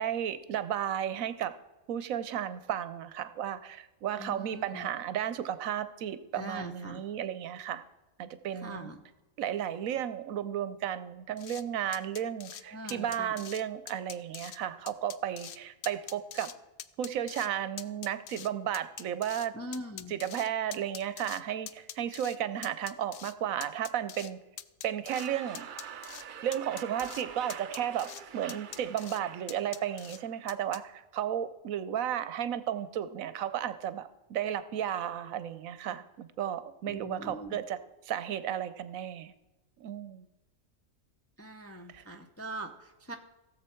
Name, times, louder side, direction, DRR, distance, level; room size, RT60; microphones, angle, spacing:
voice 1, 0.0-1.5 1.9-7.8 8.2-8.9 9.4-16.5 17.0-19.5 20.1-24.4 24.8-25.7 26.4-37.8 38.0-39.3 39.8-40.2 41.9-42.0, right 10 dB, 75° right, 13 dB, 1.1 m, -34 dB
voice 2, 4.1-4.9 6.3-7.0 8.5-9.0 12.6-13.4 19.5-20.1 36.8-37.6 41.4-43.2, right 1 dB, 15° left, 3 dB, 0.5 m, -42 dB
sound 1, 11.4-11.6 11.9-12.6 12.9-13.6 13.9-14.6 14.9-15.6 15.8-16.5 16.8-17.5 17.8-19.5 19.7-21.4 21.7-22.4 22.6-23.3 23.6-24.3 24.6-25.3 25.5-26.2 26.5-27.2 27.5-28.2 28.5-29.2 29.5-30.2 30.5-30.8, left 10 dB, 70° left, 0.5 m, -44 dB
sound 2, 25.1-30.4, right 7 dB, 60° right, 0.5 m, -46 dB
16.5 x 7.4 x 4.4 m, 1.1 s
omnidirectional pair, 1.5 m